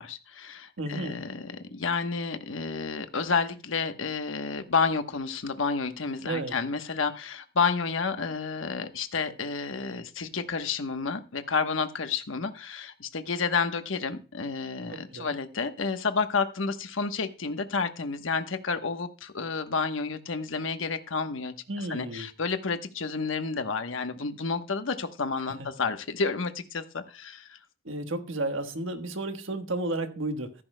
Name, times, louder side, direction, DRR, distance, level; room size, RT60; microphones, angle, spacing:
voice 1, 0.0-27.6, left 4 dB, 80° left, 1.1 m, -30 dB
voice 2, 0.8-1.2 6.2-6.5 14.9-15.3 21.7-22.3 25.6-25.7 27.8-30.5, right 2 dB, 80° right, 1.3 m, -32 dB
15.0 x 13.0 x 2.2 m
head